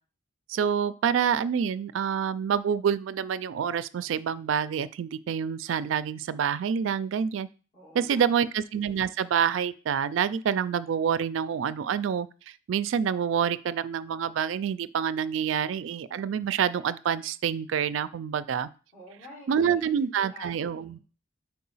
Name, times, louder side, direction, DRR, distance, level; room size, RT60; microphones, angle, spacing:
voice 1, 0.5-7.5 7.9-12.3 12.7-18.7 19.5-21.0, right 7 dB, 70° right, 16 dB, 0.3 m, -27 dB
voice 2, 7.7-8.4 18.9-19.9 20.2-21.0, left 1 dB, 40° left, -5 dB, 3.5 m, -49 dB
4.8 x 4.5 x 5.4 m, 0.36 s
head